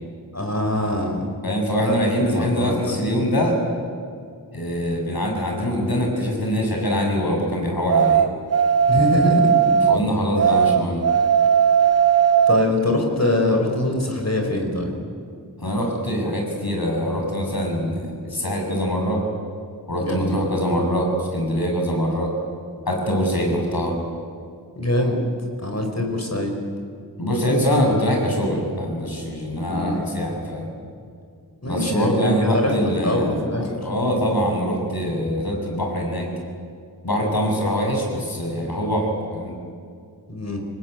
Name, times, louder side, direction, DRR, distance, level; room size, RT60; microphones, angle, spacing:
voice 1, 0.3-1.3 1.8-1.9 2.3-3.0 8.9-9.6 12.5-14.9 20.0-20.5 24.8-25.2 25.6-26.6 29.7-30.0 31.6-33.7 40.3-40.6, left 1 dB, 40° left, 3 dB, 4.8 m, -23 dB
voice 2, 1.4-3.6 4.5-8.3 9.9-11.0 15.6-19.2 19.9-22.3 22.9-24.0 27.2-30.7 31.6-36.3 37.0-39.6, equal, 60° left, 1 dB, 6.8 m, -23 dB
sound 1, 7.9-10.0 10.4-12.7, right 8 dB, 35° right, 0.8 m, -17 dB
24.5 x 19.0 x 9.3 m, 2.2 s
wide cardioid pair, 50°, 42 cm